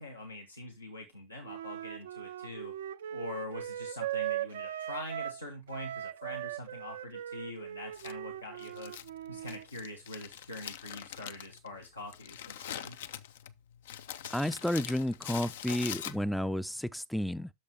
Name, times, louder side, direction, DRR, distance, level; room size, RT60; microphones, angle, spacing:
voice 1, 0.0-2.7 3.1-8.9 9.3-13.0, left 2 dB, 90° left, 1.2 m, -44 dB
Wind instrument woodwind instrument, 1.4-5.4 5.7-9.6, right 11 dB, 70° right, 0.4 m, -39 dB
Crumpling crinkling, 7.9-16.6, left 10 dB, 65° left, 0.5 m, -44 dB
voice 2, 14.3-17.5, left 1 dB, ahead, 0.4 m, -31 dB
7.2 x 6.6 x 3.5 m
figure-of-eight pair, 90°, 0 cm